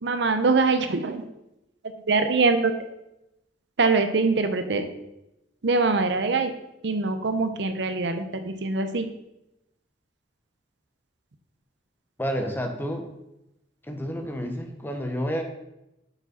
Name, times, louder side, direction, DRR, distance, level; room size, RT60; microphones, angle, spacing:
voice 1, 0.0-1.2 2.1-2.7 3.8-4.8 5.6-6.5 6.8-9.1, right 3 dB, 65° right, 8 dB, 0.7 m, -23 dB
voice 2, 12.2-13.1 13.8-15.4, equal, 10° left, 4 dB, 0.9 m, -30 dB
6.6 x 4.7 x 5.8 m, 0.88 s
head